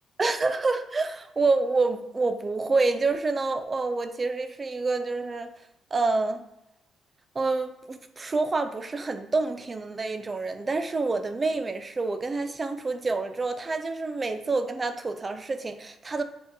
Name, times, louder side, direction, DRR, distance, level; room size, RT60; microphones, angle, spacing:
voice 1, 0.2-5.5 5.9-6.4 7.3-16.2, right 3 dB, 30° right, 8 dB, 0.5 m, -27 dB
6.9 x 2.4 x 2.9 m, 0.87 s
cardioid pair, 90°, 0 cm